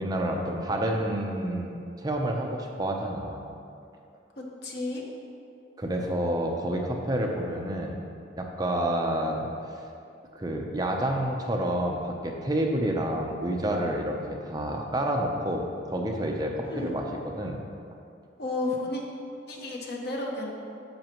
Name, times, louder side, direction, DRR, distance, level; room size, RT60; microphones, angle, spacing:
voice 1, 0.0-3.4 5.8-8.0 8.4-9.5 10.3-17.0 17.4-17.6, right 1 dB, 20° right, 1 dB, 0.7 m, -29 dB
voice 2, 4.4-5.0 16.6-16.9 18.4-19.0 19.5-20.5, left 2 dB, 60° left, -1 dB, 1.2 m, -32 dB
10.5 x 6.7 x 3.0 m, 2.5 s
head